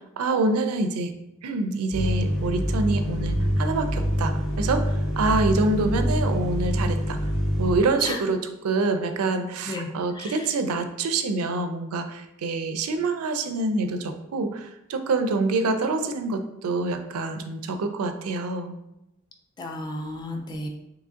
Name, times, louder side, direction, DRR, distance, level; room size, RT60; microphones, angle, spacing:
voice 1, 0.2-1.1 1.4-7.2 7.6-18.7, right 3 dB, 90° right, 7 dB, 0.4 m, -26 dB
sound 1, 1.9-7.8, equal, ahead, 0.7 m, -25 dB
voice 2, 10.1-10.5 19.6-20.7, left 2 dB, 20° left, 2 dB, 0.3 m, -33 dB
2.9 x 2.5 x 3.6 m, 0.87 s
head